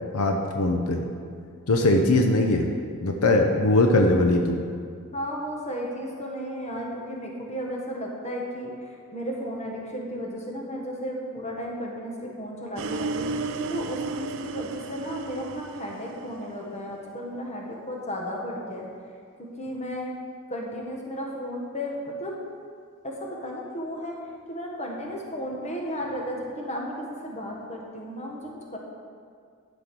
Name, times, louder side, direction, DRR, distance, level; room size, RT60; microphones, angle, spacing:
voice 1, 0.1-1.0 1.7-2.7 3.0-4.6, left 2 dB, 75° left, 3 dB, 0.8 m, -21 dB
voice 2, 5.1-18.8 19.4-20.1 20.5-22.3 23.0-24.2 24.5-28.8, equal, 30° left, -1 dB, 1.5 m, -34 dB
sound 1, 12.8-16.9, right 3 dB, 55° right, 0.5 m, -33 dB
12.0 x 5.2 x 6.0 m, 2.2 s
head